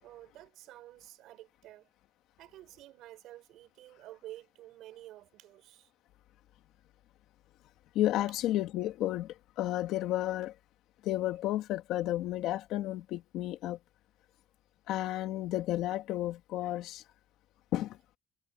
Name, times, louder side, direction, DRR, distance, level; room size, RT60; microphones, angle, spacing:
voice 1, 0.0-1.9 2.4-5.9, right 14 dB, 65° right, 5.6 m, -51 dB
voice 2, 7.9-10.5 11.0-13.8 14.9-17.0 17.7-18.0, left 14 dB, 65° left, 2.7 m, -32 dB
cardioid pair, 155°, 0 cm